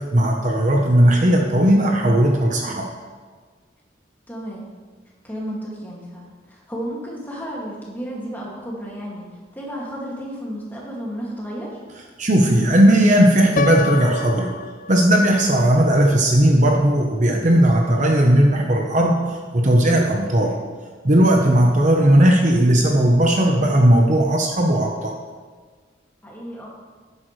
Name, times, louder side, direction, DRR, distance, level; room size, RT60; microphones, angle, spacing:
voice 1, 0.1-2.9 12.2-14.5 14.9-19.2 19.5-20.5 21.0-25.1, right 1 dB, 40° right, 1 dB, 1.0 m, -16 dB
voice 2, 4.3-4.7 5.2-11.8 21.1-21.4 26.2-26.7, equal, 10° left, -4 dB, 2.3 m, -33 dB
Piano, 13.6-15.5, left 3 dB, 45° left, 0.3 m, -27 dB
12.5 x 10.0 x 3.3 m, 1.5 s
head